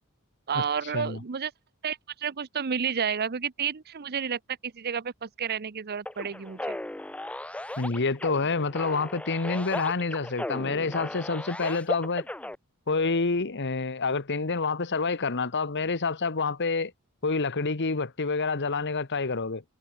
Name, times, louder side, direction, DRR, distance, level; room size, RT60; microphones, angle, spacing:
voice 1, 0.5-1.5 1.8-6.8, right 7 dB, 45° right, 0.7 m, -31 dB
sound 1, 6.1-12.6, left 1 dB, 5° left, 0.5 m, -36 dB
voice 2, 7.8-12.3 12.9-16.9 17.2-19.6, left 4 dB, 55° left, 1.3 m, -28 dB
head